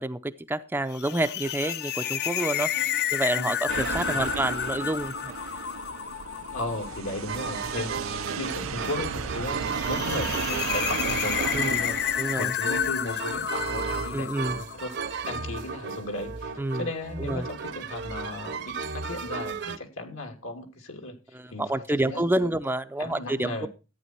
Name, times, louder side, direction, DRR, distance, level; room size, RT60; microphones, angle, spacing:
voice 1, 0.0-2.7 3.1-5.3 11.5-11.7 12.2-12.5 14.1-14.6 16.6-16.9 17.2-17.5 21.3-23.7, right 1 dB, 10° right, 9 dB, 0.6 m, -28 dB
sound 1, 0.9-15.3, left 10 dB, 50° left, 0.5 m, -31 dB
sound 2, 3.7-12.5, right 6 dB, 80° right, 0.6 m, -34 dB
voice 2, 6.5-7.9 8.4-21.1 21.5-22.6 23.0-23.7, left 2 dB, 75° left, 4 dB, 2.9 m, -36 dB
sound 3, 7.3-19.8, right 5 dB, 55° right, 0.9 m, -34 dB
14.0 x 9.1 x 4.5 m, 0.31 s
head